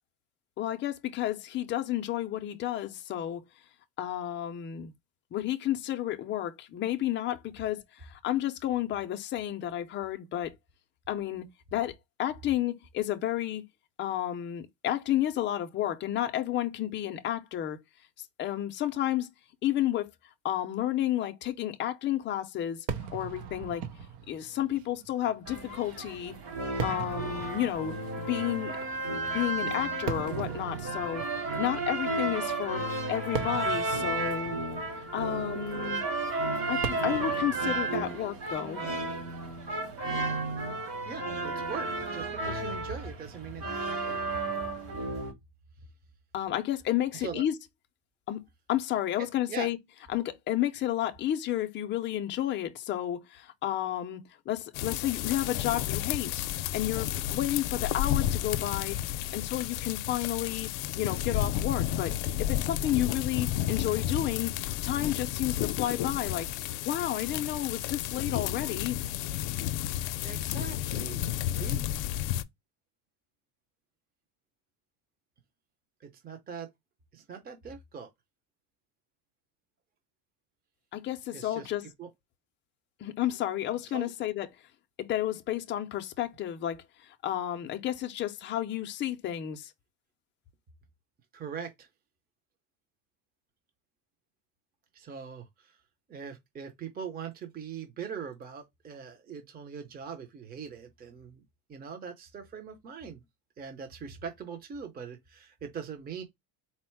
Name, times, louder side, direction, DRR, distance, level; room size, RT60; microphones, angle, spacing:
voice 1, 0.6-3.4 4.0-4.9 5.3-10.5 11.1-13.6 14.0-17.8 18.4-19.3 19.6-20.1 20.4-23.8 24.3-26.3 26.8-28.8 29.1-32.8 33.1-34.6 35.1-36.0 36.7-38.9 46.3-47.6 48.3-48.4 48.7-49.8 50.1-56.4 56.7-59.0 59.3-60.7 61.0-64.5 64.8-66.5 66.8-69.0 80.9-81.9 83.0-84.5 85.0-89.7, left 12 dB, 25° left, 0.4 m, -31 dB
Fireworks, 22.9-40.2, right 7 dB, 80° right, 0.9 m, -41 dB
sound 1, 25.5-45.3, right 2 dB, 55° right, 2.4 m, -33 dB
voice 2, 41.0-44.2 47.2-47.4 49.5-49.7 70.2-71.8 76.0-76.7 77.1-78.1 81.3-81.7 82.0-82.1 83.9-84.1 91.3-91.9 94.9-95.7 96.1-101.4 101.7-103.2 103.6-106.2, right 6 dB, 20° right, 0.6 m, -41 dB
sound 2, 54.7-72.4, left 13 dB, 75° left, 0.6 m, -32 dB
4.2 x 2.0 x 4.4 m
cardioid pair, 150°, 44 cm